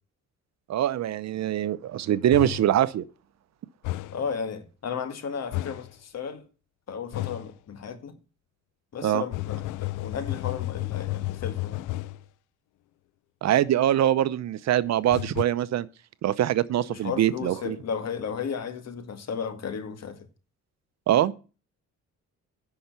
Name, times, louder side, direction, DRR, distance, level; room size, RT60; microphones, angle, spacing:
voice 1, 0.7-3.0 9.0-9.2 13.4-15.9 16.2-17.8 21.1-21.3, right 12 dB, 60° right, 0.7 m, -23 dB
sound 1, 2.3-2.8 3.8-4.3 5.5-5.9 7.1-7.5 9.3-12.2 15.1-15.4, left 17 dB, 85° left, 0.5 m, -32 dB
voice 2, 4.1-6.4 6.9-8.1 8.9-11.8 16.9-20.3, left 6 dB, 60° left, 2.0 m, -34 dB
10.0 x 5.8 x 8.1 m
cardioid pair, 90°, 30 cm